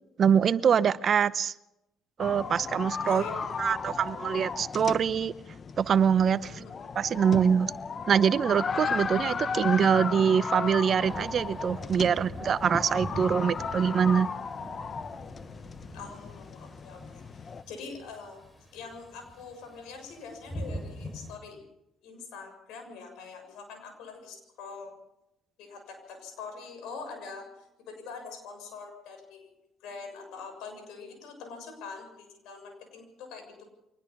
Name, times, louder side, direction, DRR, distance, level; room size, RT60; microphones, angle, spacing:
voice 1, 0.2-1.5 2.2-3.2 3.6-5.3 5.8-6.6 6.9-7.7 8.1-14.3, right 7 dB, 50° right, 16 dB, 0.8 m, -24 dB
sound 1, 2.2-17.6, left 5 dB, 40° left, 1.1 m, -35 dB
voice 2, 3.0-4.1 6.4-6.7 15.9-18.4 18.7-21.6 22.0-24.9 25.6-33.6, left 4 dB, 80° left, 5 dB, 6.8 m, -44 dB
Thunder / Rain, 11.0-21.4, equal, 20° left, 4.9 m, -43 dB
24.0 x 19.5 x 5.5 m, 0.88 s
supercardioid pair, 70°, 0 cm